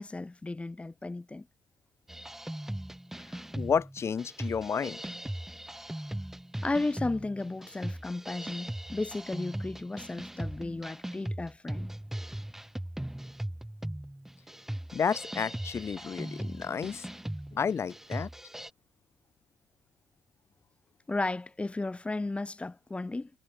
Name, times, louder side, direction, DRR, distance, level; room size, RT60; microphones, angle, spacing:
voice 1, 0.0-1.5 6.6-12.0 21.1-23.3, left 2 dB, 20° left, 5.3 m, -34 dB
sound 1, 2.1-18.7, right 1 dB, 5° right, 5.2 m, -39 dB
voice 2, 3.5-5.0 14.9-17.1 17.5-18.3, left 6 dB, 45° left, 4.7 m, -31 dB
supercardioid pair, 75°, 6 cm